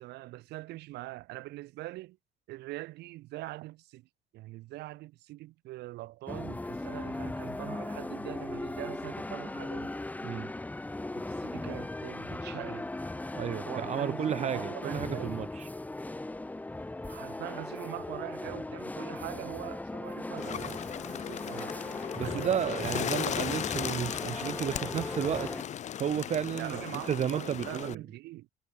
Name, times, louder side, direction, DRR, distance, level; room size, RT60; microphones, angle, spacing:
voice 1, 0.0-2.2 2.5-4.1 4.3-9.9 11.3-12.9 13.6-15.4 17.1-20.8 21.2-21.8 22.2-22.5 22.8-23.3 26.6-28.5, right 18 dB, 80° right, 0.9 m, -43 dB
sound 1, 6.3-25.6, left 2 dB, 10° left, 1.1 m, -38 dB
voice 2, 13.3-15.6 22.1-25.5 26.0-26.8 27.1-28.0, right 9 dB, 40° right, 0.7 m, -32 dB
Bird, 20.4-28.0, left 10 dB, 45° left, 0.7 m, -36 dB
cardioid pair, 110°, 17 cm